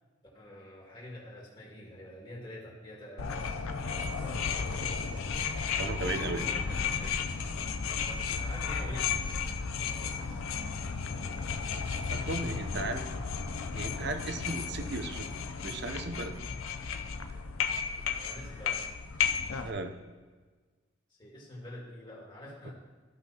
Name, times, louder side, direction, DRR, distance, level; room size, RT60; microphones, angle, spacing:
voice 1, 0.3-7.6 8.0-10.4 11.1-12.0 18.1-18.8 21.2-22.7, left 1 dB, 25° left, -4 dB, 2.2 m, -48 dB
sound 1, 3.2-19.7, left 6 dB, 90° left, 0.6 m, -33 dB
voice 2, 5.8-6.4 12.1-13.1 13.7-16.4 19.6-19.9 22.6-22.7, right 2 dB, 55° right, 7 dB, 0.7 m, -36 dB
14.5 x 5.5 x 2.9 m, 1.4 s
head